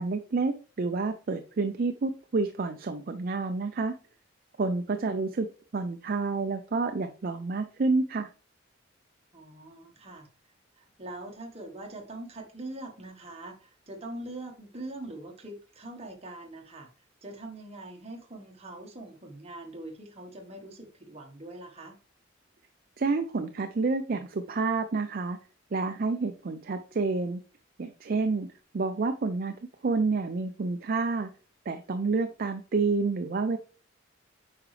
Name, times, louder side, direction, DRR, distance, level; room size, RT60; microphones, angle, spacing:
voice 1, 0.0-3.9 4.6-5.5 5.7-8.3 23.0-25.4 25.7-27.4 27.8-28.5 28.7-29.5 29.8-31.3 31.7-33.6, right 3 dB, 45° right, 7 dB, 0.4 m, -29 dB
voice 2, 9.3-10.3 10.8-16.9 17.2-22.0, right 2 dB, 30° right, 2 dB, 1.3 m, -43 dB
8.5 x 4.9 x 3.2 m, 0.38 s
head